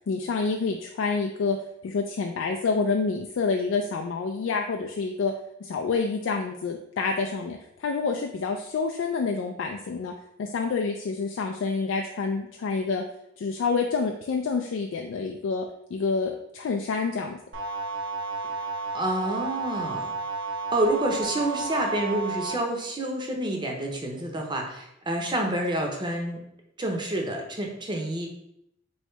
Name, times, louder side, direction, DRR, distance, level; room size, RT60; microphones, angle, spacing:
voice 1, 0.1-1.6 1.8-5.3 5.6-10.1 10.4-13.0 13.4-17.4, left 4 dB, 70° left, 3 dB, 0.3 m, -28 dB
sound 1, 17.5-22.5, right 3 dB, 70° right, 0.8 m, -32 dB
voice 2, 18.9-20.1 20.7-26.4 26.8-28.3, right 1 dB, 25° right, 1 dB, 0.7 m, -28 dB
3.1 x 2.8 x 4.4 m, 0.78 s
head